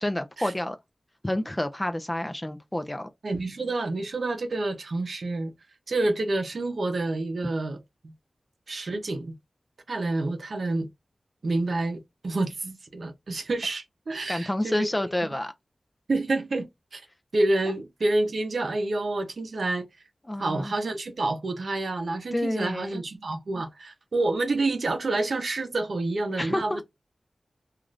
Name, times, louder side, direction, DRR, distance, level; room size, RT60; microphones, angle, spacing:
voice 1, 0.0-0.8 1.2-3.1 14.3-15.5 20.2-20.7 22.3-23.0 26.4-26.8, left 1 dB, 15° left, 0.4 m, -29 dB
voice 2, 3.2-5.5 5.9-8.1 8.7-9.3 9.9-10.9 11.4-14.9 16.1-17.0 17.3-19.9 20.4-26.8, right 2 dB, 70° right, 0.6 m, -28 dB
3.1 x 2.4 x 2.4 m
wide cardioid pair, 75°, 0 cm